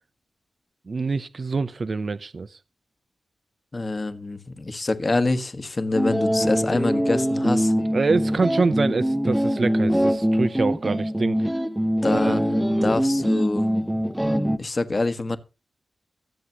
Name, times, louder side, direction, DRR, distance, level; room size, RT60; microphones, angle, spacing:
voice 1, 0.9-2.6 7.9-11.5 12.1-12.9, right 4 dB, 45° right, 0.6 m, -26 dB
voice 2, 3.7-7.7 12.0-15.4, left 2 dB, 35° left, 1.4 m, -26 dB
sound 1, 6.0-14.6, equal, 5° right, 0.9 m, -23 dB
23.0 x 7.8 x 2.9 m
wide cardioid pair, 85°, 0 cm